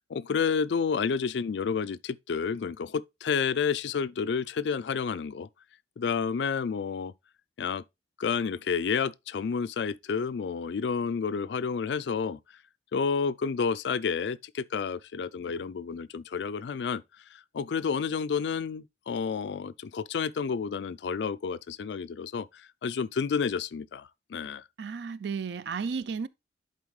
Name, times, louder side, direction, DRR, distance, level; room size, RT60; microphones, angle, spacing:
voice 1, 0.1-5.5 6.0-7.1 7.6-7.8 8.2-12.4 12.9-17.0 17.5-22.5 22.8-24.6, left 6 dB, 70° left, 0.4 m, -30 dB
voice 2, 24.8-26.3, right 5 dB, 65° right, 0.4 m, -33 dB
10.5 x 4.3 x 3.2 m
head